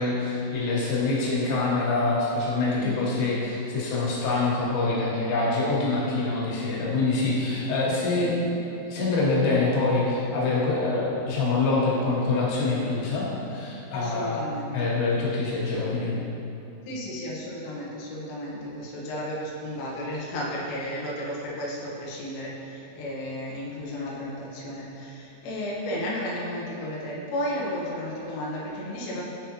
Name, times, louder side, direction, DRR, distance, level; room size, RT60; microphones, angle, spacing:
voice 1, 0.0-8.4 8.9-14.4 14.7-16.1, left 3 dB, 75° left, -6 dB, 3.1 m, -25 dB
voice 2, 2.8-3.2 13.9-14.9 15.5-15.6 16.9-29.2, left 1 dB, 90° left, -5 dB, 1.9 m, -33 dB
9.7 x 3.4 x 2.9 m, 2.8 s
omnidirectional pair, 5.3 m